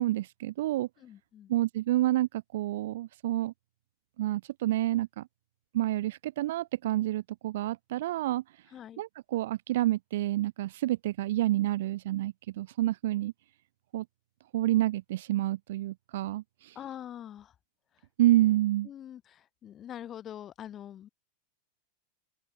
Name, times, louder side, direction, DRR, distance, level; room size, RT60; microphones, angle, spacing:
voice 1, 0.0-0.9 1.5-3.5 4.2-5.3 5.7-8.7 9.0-13.3 13.9-14.0 14.5-16.8 18.2-18.9, right 15 dB, 55° right, 1.1 m, -28 dB
voice 2, 1.0-1.5 8.7-9.0 16.7-17.5 17.9-18.1 18.8-21.1, left 10 dB, 30° left, 1.8 m, -44 dB
open air
figure-of-eight pair, 90°, 0 cm